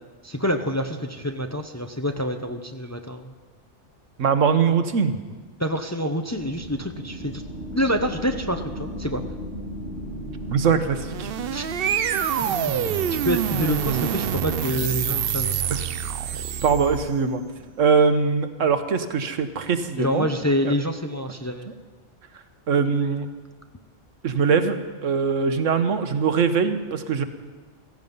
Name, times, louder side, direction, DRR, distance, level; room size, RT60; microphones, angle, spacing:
voice 1, 0.2-3.3 5.6-7.4 7.7-9.2 11.5-11.7 12.6-15.6 20.0-21.7, equal, 15° left, 5 dB, 0.7 m, -27 dB
voice 2, 4.2-5.2 10.5-11.3 15.7-15.8 16.6-17.4 17.8-20.3 20.6-20.7 22.7-23.3 24.2-24.8 25.0-27.2, right 5 dB, 80° right, 9 dB, 1.4 m, -22 dB
sound 1, 6.3-18.6, equal, 65° left, 6.7 m, -38 dB
sound 2, 10.8-17.2, right 9 dB, 55° right, 0.7 m, -26 dB
15.5 x 15.5 x 5.4 m, 1.4 s
omnidirectional pair, 1.3 m